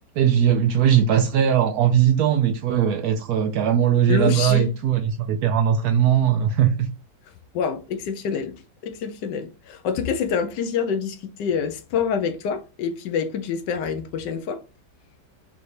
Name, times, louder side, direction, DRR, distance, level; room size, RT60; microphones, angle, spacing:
voice 1, 0.2-6.9, right 9 dB, 80° right, 0.8 m, -19 dB
voice 2, 4.1-4.7 7.5-8.5 8.8-14.6, left 6 dB, 70° left, 1.2 m, -26 dB
5.5 x 2.6 x 3.1 m
omnidirectional pair, 2.1 m